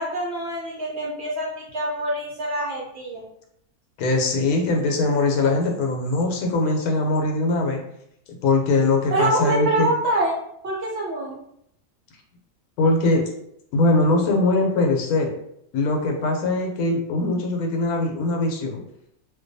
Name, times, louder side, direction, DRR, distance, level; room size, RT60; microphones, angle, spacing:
voice 1, 0.0-3.2 9.1-10.4 10.6-11.4, right 1 dB, 65° right, -4 dB, 0.7 m, -25 dB
voice 2, 4.0-7.8 8.4-9.9 12.8-13.2 13.7-15.3 15.7-18.8, left 2 dB, 85° left, 2 dB, 1.1 m, -21 dB
2.5 x 2.2 x 2.6 m, 0.74 s
omnidirectional pair, 1.5 m